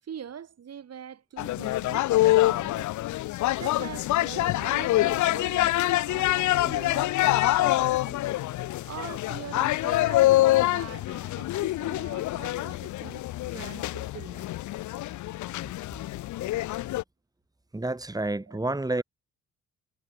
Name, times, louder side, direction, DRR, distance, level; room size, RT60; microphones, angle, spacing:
voice 1, 0.0-3.0 3.5-8.2 8.8-14.5 18.5-18.6 18.9-19.0, right 8 dB, 55° right, 7.2 m, -43 dB
sound 1, 1.4-17.0, left 16 dB, 70° left, 0.6 m, -25 dB
voice 2, 17.7-19.0, right 2 dB, 10° right, 4.2 m, -29 dB
cardioid pair, 90°, 30 cm